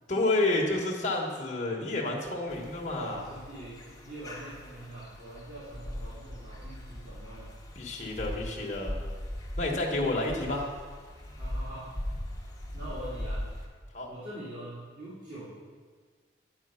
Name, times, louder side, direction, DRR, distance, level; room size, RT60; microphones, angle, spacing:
voice 1, 0.1-3.2 7.7-9.0 9.6-10.7 13.9-14.1, left 2 dB, 40° left, -2 dB, 1.3 m, -30 dB
sound 1, 2.5-13.7, left 1 dB, 20° left, 1.1 m, -40 dB
voice 2, 2.9-7.5 11.4-11.9 12.7-13.4 14.1-15.5, right 1 dB, 45° right, -11 dB, 2.5 m, -43 dB
9.1 x 6.0 x 5.7 m, 1.6 s
head